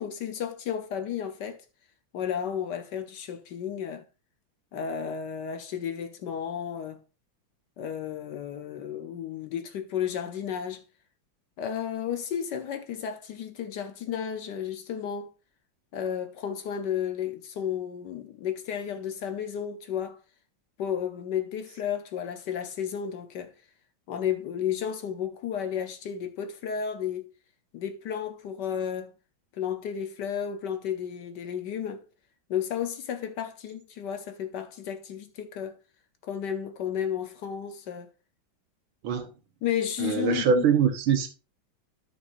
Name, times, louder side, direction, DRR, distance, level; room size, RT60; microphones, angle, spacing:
voice 1, 0.0-1.6 2.1-4.1 4.7-7.0 7.8-10.8 11.6-15.3 15.9-20.2 20.8-23.5 24.1-27.3 27.7-29.1 29.5-32.0 32.5-35.8 36.2-38.1 39.6-40.6, left 8 dB, 65° left, 1.3 m, -32 dB
voice 2, 40.0-41.3, right 7 dB, 75° right, 1.9 m, -23 dB
12.5 x 5.4 x 2.5 m
omnidirectional pair, 2.2 m